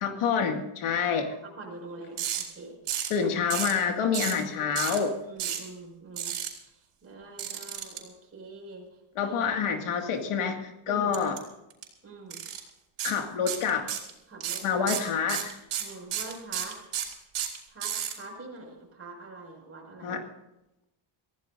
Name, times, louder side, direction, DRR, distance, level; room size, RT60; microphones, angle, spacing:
voice 1, 0.0-1.3 3.1-5.1 9.2-11.4 13.0-13.9 14.6-15.6 20.0-20.2, left 6 dB, 85° left, 4 dB, 2.3 m, -27 dB
voice 2, 1.1-3.1 3.8-4.0 4.5-4.7 5.3-9.4 10.9-11.1 12.0-12.4 14.3-14.8 15.8-16.8 17.7-20.2, right 2 dB, 30° right, -1 dB, 6.0 m, -45 dB
sound 1, 2.2-2.4 2.9-3.2 3.5-3.8 4.1-4.4 4.7-5.0 5.4-5.6 6.2-6.5 7.4-8.0 11.1-11.4 11.7-11.8 12.3-12.6 13.0-13.1 13.5-14.1 14.4-18.1, right 10 dB, 75° right, 4.4 m, -31 dB
25.0 x 16.0 x 2.7 m, 0.92 s
cardioid pair, 150°, 49 cm